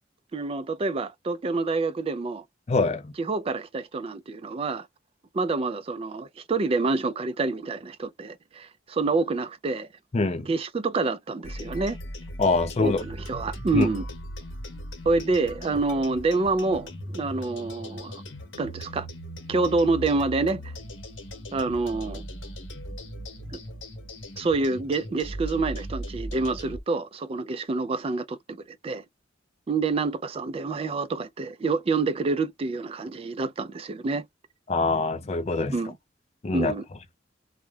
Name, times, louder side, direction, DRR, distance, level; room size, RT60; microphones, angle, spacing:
voice 1, 0.3-2.4 3.2-4.9 5.3-9.9 10.5-12.0 12.8-14.0 15.1-18.2 18.6-19.1 19.5-20.6 21.5-22.2 23.5-23.6 24.4-29.0 29.7-34.2 35.7-35.9 36.5-36.8, right 3 dB, 30° right, 0.3 m, -27 dB
voice 2, 2.7-3.1 10.1-10.5 12.4-13.0 13.7-13.9 34.7-35.8 36.4-36.7, left 3 dB, 35° left, 0.4 m, -24 dB
sound 1, 11.4-26.8, equal, 75° left, 1.0 m, -38 dB
2.3 x 2.1 x 3.2 m
head